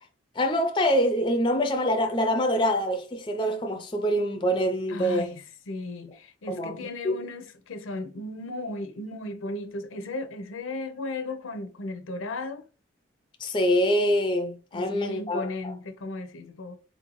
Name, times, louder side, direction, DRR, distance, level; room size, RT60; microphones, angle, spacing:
voice 1, 0.4-5.3 6.5-6.8 7.0-7.1 13.4-15.4, equal, 25° left, 0.4 m, -25 dB
voice 2, 4.9-12.6 14.7-16.8, left 2 dB, 85° left, 0.6 m, -35 dB
4.1 x 2.6 x 2.9 m
head